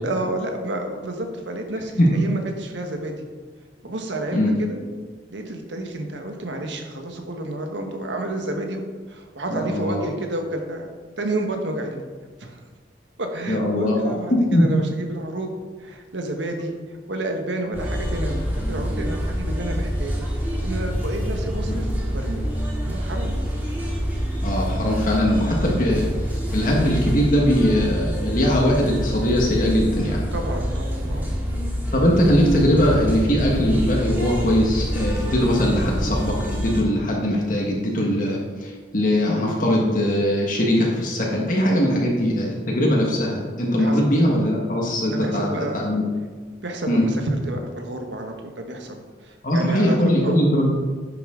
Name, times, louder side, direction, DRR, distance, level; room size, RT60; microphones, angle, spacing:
voice 1, 0.0-3.2 3.8-4.8 5.3-8.8 9.1-10.9 11.2-12.0 12.4-12.6 13.2-15.5 15.8-20.3 20.6-22.4 22.8-23.3 25.6-25.8 30.3-31.3 41.8-42.0 43.8-44.0 45.1-45.9 46.6-50.4, right 1 dB, 80° right, 3 dB, 1.3 m, -30 dB
voice 2, 9.5-10.0 13.5-14.0 14.3-14.7 21.7-21.8 24.4-26.1 26.5-30.2 31.9-46.0 46.9-47.0 49.4-50.7, equal, 45° left, -2 dB, 1.5 m, -20 dB
sound 1, 17.7-36.8, equal, 10° right, 1.9 m, -26 dB
10.5 x 6.9 x 3.8 m, 1.5 s
head